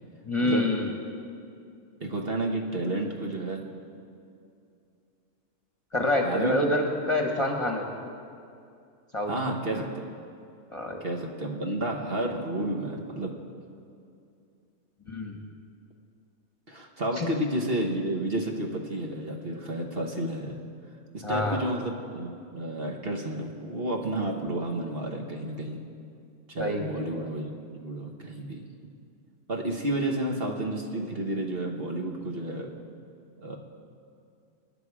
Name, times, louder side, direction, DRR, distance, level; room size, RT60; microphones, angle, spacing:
voice 1, 0.3-0.9 5.9-7.9 9.1-9.3 10.7-11.0 15.1-15.4 17.2-17.3 21.2-21.6 26.6-27.2, left 1 dB, 20° left, 1 dB, 1.3 m, -27 dB
voice 2, 2.0-3.6 6.2-6.5 9.3-10.0 11.0-13.3 16.7-20.5 21.1-25.8 26.5-28.6 29.5-32.7 33.4-33.6, right 1 dB, 45° right, 1 dB, 1.5 m, -31 dB
24.5 x 10.5 x 4.9 m, 2.5 s
omnidirectional pair, 1.5 m